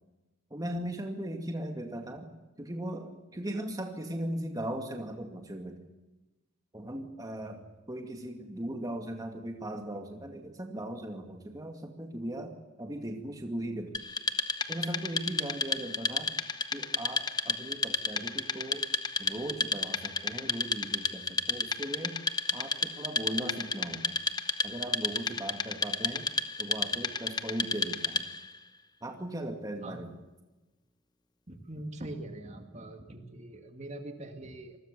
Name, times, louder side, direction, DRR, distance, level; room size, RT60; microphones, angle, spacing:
voice 1, 0.5-5.8 6.7-14.0 14.7-16.3 16.7-18.9 19.2-22.2 22.5-24.2 24.6-26.3 26.6-28.3 29.0-30.1, right 1 dB, 15° right, 4 dB, 2.2 m, -38 dB
Wood, 13.9-28.5, left 3 dB, 20° left, 1.0 m, -32 dB
voice 2, 31.5-34.8, right 1 dB, 30° right, 5 dB, 2.2 m, -42 dB
27.0 x 21.0 x 6.9 m, 1.1 s
head